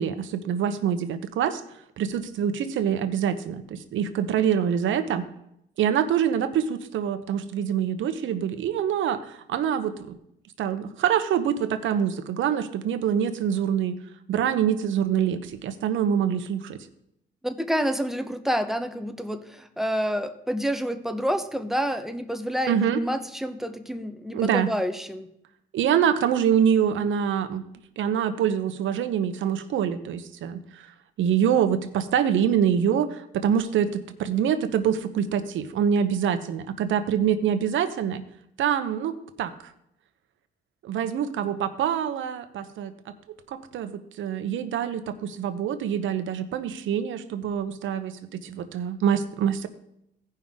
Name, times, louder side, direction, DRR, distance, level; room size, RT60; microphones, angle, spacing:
voice 1, 0.0-1.6 2.0-5.3 5.8-10.2 10.6-14.0 14.3-16.8 22.7-23.0 24.3-24.7 25.7-27.6 28.0-30.9 31.2-38.2 38.6-39.5 40.8-43.1 43.5-49.7, right 8 dB, 75° right, 9 dB, 1.0 m, -25 dB
voice 2, 17.4-25.3, equal, ahead, 8 dB, 0.9 m, -28 dB
16.5 x 5.5 x 3.7 m, 0.78 s
cardioid pair, 90°, 20 cm